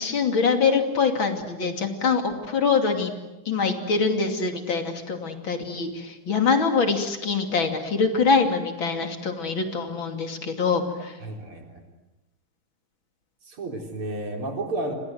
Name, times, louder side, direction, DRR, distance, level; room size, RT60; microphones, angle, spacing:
voice 1, 0.0-3.1 3.4-11.2, left 5 dB, 65° left, 5 dB, 3.5 m, -24 dB
voice 2, 11.2-11.8 13.4-14.9, right 2 dB, 90° right, 2 dB, 5.1 m, -32 dB
29.5 x 25.5 x 7.9 m, 1.0 s
omnidirectional pair, 2.3 m